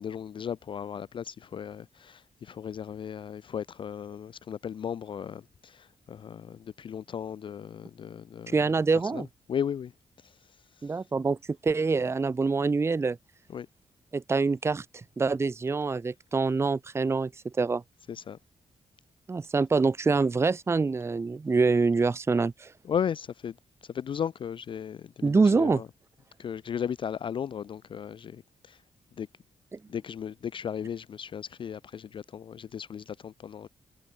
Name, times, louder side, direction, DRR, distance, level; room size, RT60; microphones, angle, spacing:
voice 1, 0.0-8.6 9.1-9.9 13.5-13.7 18.1-18.4 22.8-23.5 23.9-25.9 26.4-28.8 29.2-29.3 29.9-33.7, left 8 dB, 40° left, 0.4 m, -36 dB
voice 2, 8.5-9.3 10.8-11.4 11.6-13.2 14.1-17.8 19.3-22.7 25.2-25.8, right 4 dB, 20° right, 0.7 m, -25 dB
wide cardioid pair, 160°, 13 cm